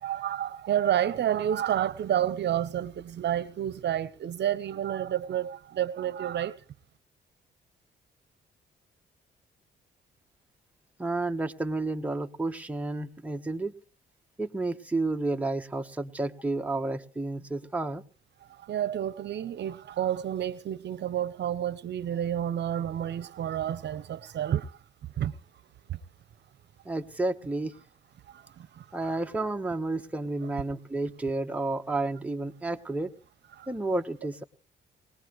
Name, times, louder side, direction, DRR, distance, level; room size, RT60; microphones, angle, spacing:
voice 1, 0.0-6.5 18.6-24.7 25.2-25.3 25.9-26.0 28.3-29.1 33.6-33.7, right 10 dB, 60° right, 0.8 m, -30 dB
voice 2, 11.0-13.7 14.4-18.0 26.8-27.7 28.9-33.1 33.7-34.4, right 2 dB, 5° right, 1.1 m, -31 dB
21.0 x 19.5 x 3.1 m
cardioid pair, 90°, 20 cm